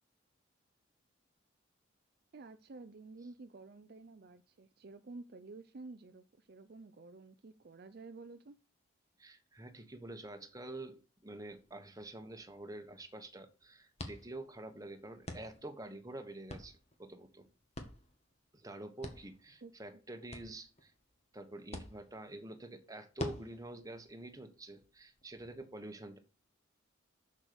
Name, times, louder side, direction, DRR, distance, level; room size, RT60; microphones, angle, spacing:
voice 1, 2.3-8.6 19.6-20.0, right 3 dB, 50° right, 0.5 m, -51 dB
voice 2, 9.2-17.5 18.5-20.9 21.3-26.2, right 2 dB, 15° right, 1.3 m, -47 dB
sound 1, 11.4-25.5, left 1 dB, 30° left, 1.6 m, -50 dB
7.2 x 6.6 x 6.9 m
head